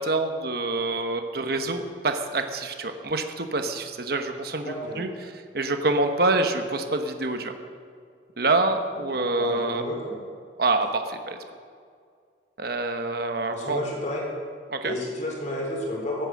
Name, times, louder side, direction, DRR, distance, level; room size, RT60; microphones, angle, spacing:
voice 1, 0.0-7.5 8.4-9.8 10.6-11.4 12.6-13.8 14.7-14.9, right 2 dB, 55° right, 6 dB, 1.1 m, -26 dB
voice 2, 4.6-5.0 9.1-10.1 13.5-14.2 14.8-16.3, left 1 dB, 40° left, -1 dB, 4.0 m, -31 dB
17.0 x 8.9 x 7.6 m, 2.2 s
head